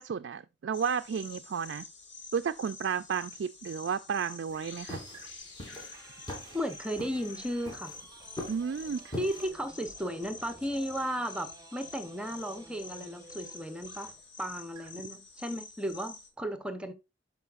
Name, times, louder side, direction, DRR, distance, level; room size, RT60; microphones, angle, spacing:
voice 1, 0.0-1.9 2.3-5.0 8.5-9.2, right 6 dB, 65° right, 0.3 m, -32 dB
sound 1, 0.7-16.3, left 4 dB, 70° left, 2.1 m, -48 dB
sound 2, 3.3-3.5 5.1-5.5 5.9-14.3 14.7-15.0, right 2 dB, 20° right, 1.1 m, -54 dB
sound 3, 4.5-9.5, left 1 dB, 25° left, 2.7 m, -43 dB
voice 2, 6.5-8.0 9.2-14.1 14.4-16.9, equal, 5° right, 0.7 m, -35 dB
12.0 x 4.8 x 2.4 m
head